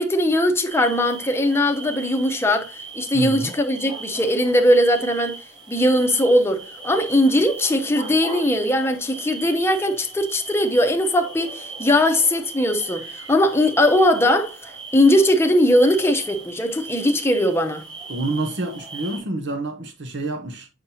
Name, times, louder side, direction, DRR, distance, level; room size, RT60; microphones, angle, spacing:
voice 1, 0.0-5.4 5.7-17.8, left 1 dB, 10° left, 0.8 m, -20 dB
sound 1, 0.7-19.2, right 4 dB, 25° right, 3.4 m, -38 dB
voice 2, 3.1-3.5 18.1-20.7, right 2 dB, 60° right, 0.9 m, -28 dB
7.2 x 5.8 x 2.8 m
head